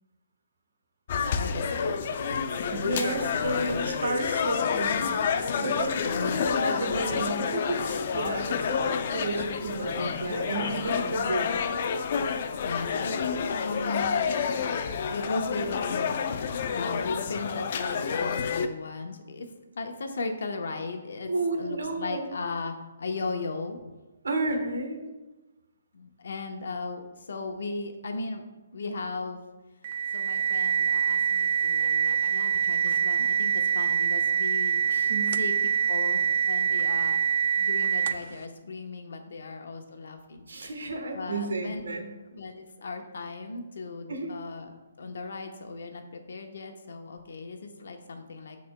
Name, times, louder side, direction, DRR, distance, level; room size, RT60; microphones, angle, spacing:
sound 1, 1.1-18.7, left 6 dB, 40° left, 0.4 m, -29 dB
voice 1, 1.3-3.0 3.4-3.8 6.0-6.4 9.9-10.3 12.6-14.2 15.1-16.1 16.7-19.5 19.7-21.3 21.6-23.8 25.9-28.4 28.7-29.5 30.1-34.8 35.4-35.5 35.9-37.2 37.6-40.7 41.1-41.8 42.3-48.6, left 3 dB, 70° left, 5 dB, 0.9 m, -36 dB
voice 2, 2.7-11.5 21.3-22.3 24.2-25.0 34.9-35.3 40.5-42.1 44.1-44.3, right 2 dB, 90° right, 4 dB, 1.2 m, -32 dB
sound 2, 29.8-38.4, right 7 dB, 40° right, 0.3 m, -25 dB
12.5 x 4.2 x 2.2 m, 1.1 s
hypercardioid pair, 165°, 0 cm